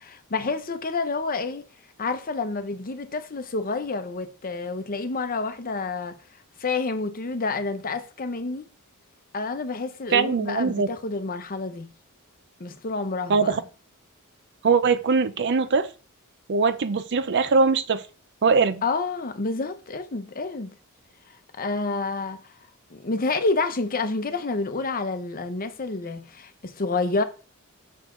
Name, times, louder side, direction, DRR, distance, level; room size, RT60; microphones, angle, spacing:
voice 1, 0.0-1.7 2.0-6.2 6.6-8.6 9.3-11.9 12.6-13.5 18.8-20.7 21.6-22.4 22.9-27.2, left 3 dB, 40° left, 0.8 m, -29 dB
voice 2, 10.1-10.9 13.3-13.6 14.6-15.9 16.5-18.0 18.4-18.8, right 5 dB, 55° right, 0.5 m, -21 dB
6.5 x 6.4 x 3.8 m
head